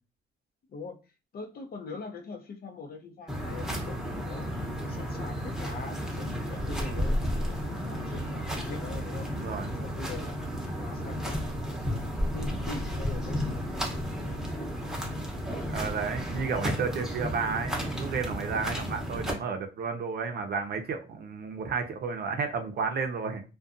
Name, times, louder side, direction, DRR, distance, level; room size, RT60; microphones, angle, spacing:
voice 1, 1.3-9.3 9.8-10.4 10.8-12.0 12.3-14.5, left 4 dB, 50° left, 0.6 m, -43 dB
sound 1, 3.3-19.3, equal, 5° right, 0.8 m, -33 dB
voice 2, 9.3-9.7 15.7-23.4, right 5 dB, 55° right, 0.6 m, -32 dB
2.4 x 2.2 x 2.5 m
cardioid pair, 90°, 20 cm